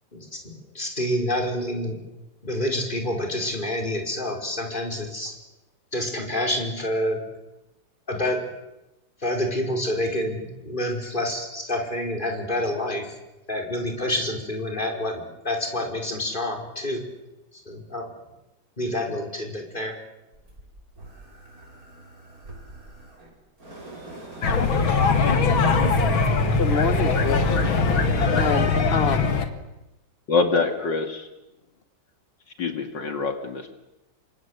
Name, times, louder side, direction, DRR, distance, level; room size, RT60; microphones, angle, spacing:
voice 1, 0.1-2.0 2.4-5.3 5.9-7.2 8.1-8.5 9.2-13.2 13.5-17.0 17.7-18.1 18.8-20.0, left 1 dB, 25° left, 2 dB, 5.3 m, -28 dB
sound 1, 20.3-28.9, right 2 dB, 45° right, 7.2 m, -41 dB
sound 2, 24.4-29.5, left 4 dB, 85° left, 2.8 m, -21 dB
voice 2, 26.2-27.6 28.3-29.3, left 5 dB, 40° left, 11 dB, 1.0 m, -27 dB
voice 3, 30.3-31.3 32.6-33.7, left 4 dB, 65° left, 7 dB, 2.7 m, -25 dB
28.5 x 25.5 x 8.1 m, 0.95 s
omnidirectional pair, 2.1 m